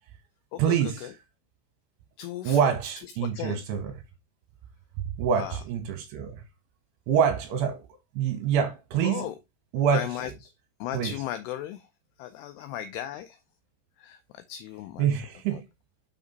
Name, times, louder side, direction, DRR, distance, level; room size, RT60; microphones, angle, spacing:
voice 1, 0.6-1.1 2.4-4.0 5.0-6.4 7.1-7.8 8.2-9.3 9.7-10.1 10.9-11.1 15.0-15.6, right 8 dB, 75° right, 2.7 m, -26 dB
voice 2, 2.2-2.7 3.2-3.6 5.3-5.6 9.0-9.3 9.9-10.3 10.8-11.8 12.2-13.4 14.0-14.2 14.5-15.1 15.5-15.6, left 12 dB, 90° left, 2.3 m, -35 dB
6.2 x 5.0 x 3.9 m
omnidirectional pair, 5.3 m